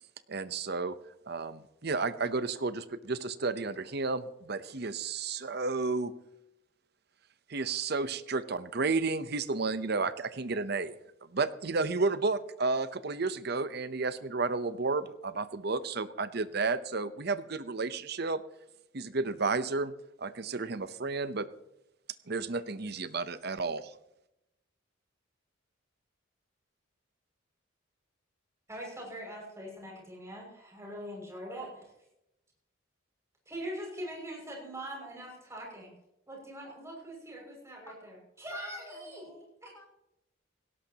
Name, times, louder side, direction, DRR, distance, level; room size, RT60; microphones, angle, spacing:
voice 1, 0.3-1.0 1.3-6.1 7.5-10.9 11.3-18.4 18.9-19.9 20.2-21.5 22.3-23.9, right 3 dB, 55° right, 13 dB, 0.8 m, -32 dB
voice 2, 28.7-31.9 33.5-35.9 36.3-39.2 39.6-39.7, equal, 15° right, -1 dB, 6.3 m, -42 dB
voice 3, 38.5-39.5 39.7-39.8, left 2 dB, 15° left, -1 dB, 4.0 m, -51 dB
17.5 x 17.5 x 2.9 m, 0.85 s
head